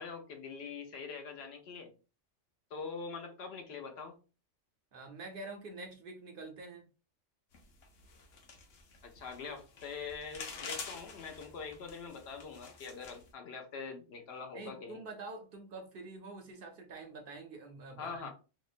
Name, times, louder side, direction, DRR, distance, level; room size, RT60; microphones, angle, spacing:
voice 1, 0.0-1.9 2.7-4.2 9.0-15.0 18.0-18.3, left 5 dB, 65° left, 3 dB, 0.8 m, -44 dB
voice 2, 4.9-6.8 14.5-18.3, right 3 dB, 60° right, 3 dB, 0.6 m, -46 dB
sound 1, 7.5-13.3, left 5 dB, 85° left, 1.0 m, -48 dB
2.8 x 2.1 x 2.4 m, 0.33 s
omnidirectional pair, 1.3 m